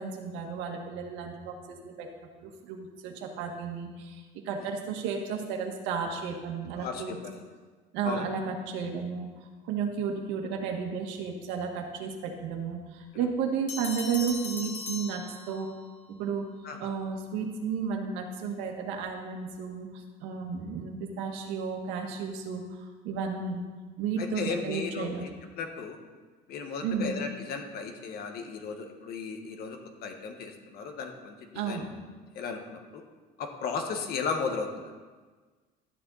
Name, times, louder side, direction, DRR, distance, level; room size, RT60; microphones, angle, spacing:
voice 1, 0.0-2.1 2.4-7.2 7.9-15.7 16.1-16.4 16.8-23.6 24.0-25.3 26.8-27.2 31.5-31.9, right 6 dB, 90° right, 2 dB, 1.7 m, -33 dB
voice 2, 6.7-7.4 8.0-8.2 16.6-16.8 24.2-25.3 25.6-26.0 26.5-31.8 32.3-32.8 33.4-34.8, left 5 dB, 55° left, 4 dB, 1.5 m, -35 dB
Bell, 13.7-15.9, left 5 dB, 80° left, 1.9 m, -38 dB
12.5 x 9.0 x 4.1 m, 1.4 s
cardioid pair, 155°, 19 cm